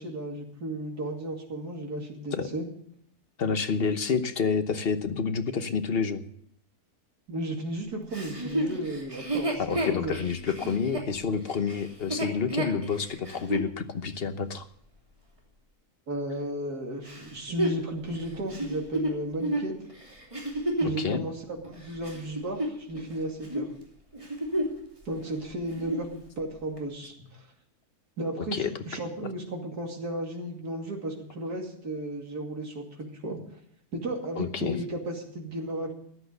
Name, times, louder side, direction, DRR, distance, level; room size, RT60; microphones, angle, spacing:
voice 1, 0.0-2.6 7.3-10.1 16.1-19.7 20.8-21.3 21.6-23.7 25.0-26.1 26.4-27.5 28.2-33.4 33.9-35.9, right 1 dB, 80° right, 0 dB, 3.1 m, -34 dB
voice 2, 3.4-6.2 9.6-14.6 21.0-21.2 28.5-28.7 34.4-34.8, left 5 dB, 45° left, 9 dB, 1.1 m, -28 dB
Chuckle chortle, 8.1-13.7 14.3-14.4 17.1-21.0 21.6-23.1 23.4-23.7 24.1-24.9 25.2-25.3 25.6-26.1 26.8-26.9, right 1 dB, 20° right, 3.0 m, -31 dB
14.0 x 10.5 x 6.7 m, 0.66 s
omnidirectional pair, 1.6 m